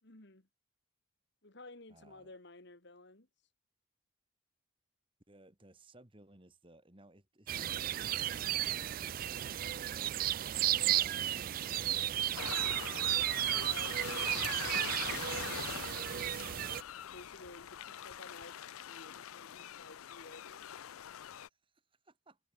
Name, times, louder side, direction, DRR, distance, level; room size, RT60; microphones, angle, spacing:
voice 1, 0.0-0.5 1.4-3.3 13.4-16.3 17.0-20.7, left 2 dB, 55° left, 2.4 m, -55 dB
voice 2, 1.9-2.3 5.3-9.2 9.7-12.7 17.8-18.1 20.8-22.4, right 1 dB, 25° right, 2.0 m, -62 dB
sound 1, 7.5-16.8, right 12 dB, 40° right, 0.3 m, -34 dB
sound 2, 12.4-21.5, left 10 dB, 90° left, 0.5 m, -44 dB
head